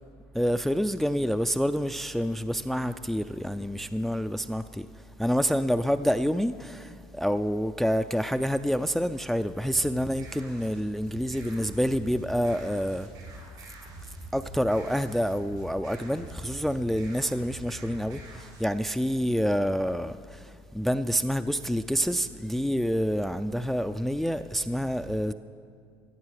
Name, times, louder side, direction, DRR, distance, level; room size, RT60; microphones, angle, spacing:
voice 1, 0.3-4.9 5.2-13.1 14.3-25.3, equal, ahead, 0.3 m, -27 dB
sound 1, 9.6-18.7, right 1 dB, 85° right, 3.3 m, -45 dB
16.0 x 8.1 x 6.5 m
supercardioid pair, 90°, 10 cm